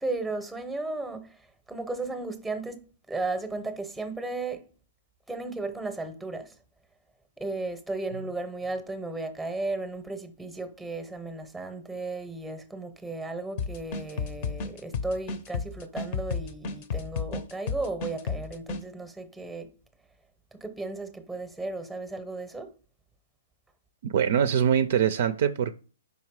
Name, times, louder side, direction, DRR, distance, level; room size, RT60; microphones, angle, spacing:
voice 1, 0.0-4.6 5.3-6.5 7.4-19.7 20.5-22.7, right 2 dB, ahead, 0.8 m, -35 dB
sound 1, 13.6-18.8, left 5 dB, 40° left, 0.7 m, -32 dB
voice 2, 24.0-25.7, right 8 dB, 55° right, 0.4 m, -23 dB
5.2 x 4.7 x 4.7 m
hypercardioid pair, 140°, 0 cm